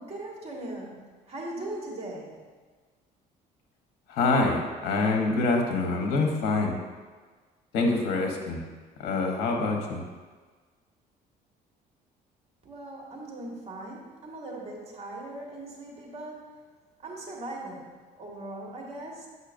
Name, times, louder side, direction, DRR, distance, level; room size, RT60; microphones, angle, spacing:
voice 1, 0.0-2.4 12.7-16.5 17.0-17.9 18.2-19.3, right 1 dB, 35° right, -2 dB, 1.7 m, -39 dB
voice 2, 4.1-6.8 7.7-8.6 9.0-10.0, left 3 dB, 80° left, 2 dB, 1.0 m, -25 dB
8.1 x 5.5 x 2.6 m, 1.4 s
cardioid pair, 110°, 17 cm